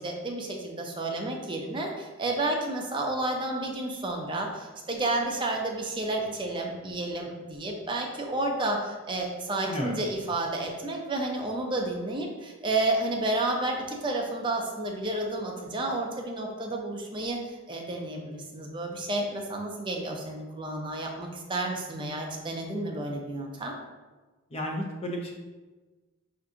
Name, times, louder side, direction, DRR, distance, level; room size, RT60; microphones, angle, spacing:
voice 1, 0.0-23.7, right 2 dB, 25° right, 1 dB, 0.5 m, -31 dB
voice 2, 24.5-25.3, equal, 30° left, 0 dB, 0.5 m, -32 dB
4.7 x 2.6 x 3.7 m, 1.2 s
head